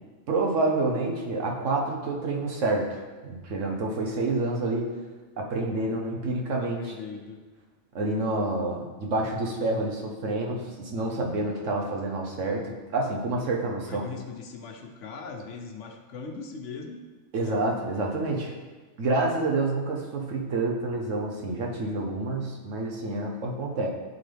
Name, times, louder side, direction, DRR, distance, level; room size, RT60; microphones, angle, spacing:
voice 1, 0.3-4.9 5.4-6.9 7.9-14.0 17.3-18.6 19.0-23.9, right 2 dB, 70° right, 0 dB, 1.3 m, -28 dB
voice 2, 6.7-7.4 13.8-17.0 17.4-17.6, left 5 dB, 70° left, 4 dB, 1.1 m, -40 dB
11.0 x 3.9 x 3.4 m, 1.3 s
omnidirectional pair, 1.3 m